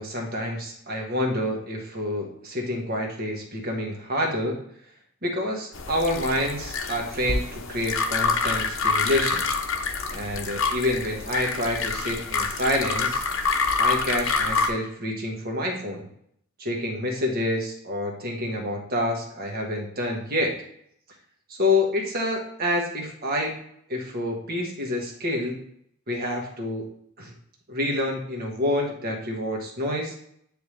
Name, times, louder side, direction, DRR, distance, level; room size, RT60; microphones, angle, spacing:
voice 1, 0.0-4.6 5.2-9.4 10.1-13.2 13.8-16.1 16.6-20.6 21.5-23.5 23.9-25.6 26.1-26.9 27.2-27.3 27.7-30.1, left 1 dB, 50° right, 1 dB, 1.5 m, -28 dB
sound 1, 5.7-14.7, left 4 dB, 70° left, 0.8 m, -27 dB
9.3 x 3.5 x 3.2 m, 0.69 s
head